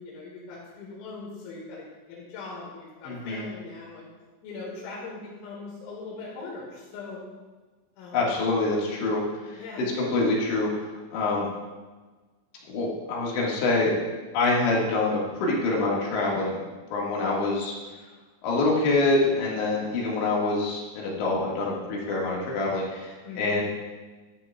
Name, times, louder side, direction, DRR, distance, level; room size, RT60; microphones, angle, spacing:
voice 1, 0.0-4.1 4.4-7.3 8.0-8.2 9.5-9.9 23.2-23.6, left 3 dB, 90° left, -4 dB, 4.6 m, -40 dB
voice 2, 3.0-3.4 8.1-9.6 10.0-11.5 12.7-13.9 14.3-16.6 16.9-17.7 18.4-23.6, left 2 dB, 65° left, -4 dB, 4.0 m, -26 dB
12.5 x 12.0 x 2.4 m, 1.3 s
omnidirectional pair, 5.8 m